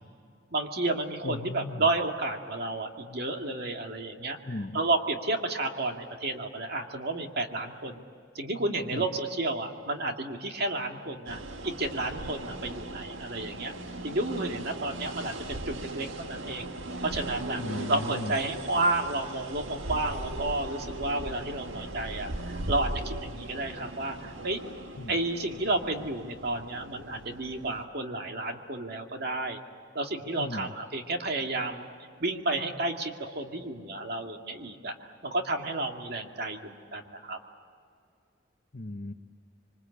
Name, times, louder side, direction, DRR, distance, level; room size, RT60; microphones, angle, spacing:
voice 1, 0.5-4.4 4.7-8.0 8.3-13.7 14.0-16.7 17.0-17.6 17.9-24.6 25.1-29.6 29.9-31.9 32.2-34.9 35.2-37.4, right 2 dB, 55° right, 3 dB, 2.3 m, -31 dB
voice 2, 1.2-1.8 4.5-4.8 8.9-9.0 17.6-18.3 25.0-25.1 30.4-30.7 38.7-39.1, left 2 dB, 45° left, 9 dB, 0.9 m, -36 dB
sound 1, 11.3-27.9, right 1 dB, 85° right, 1.7 m, -39 dB
26.0 x 24.5 x 8.5 m, 2.3 s
head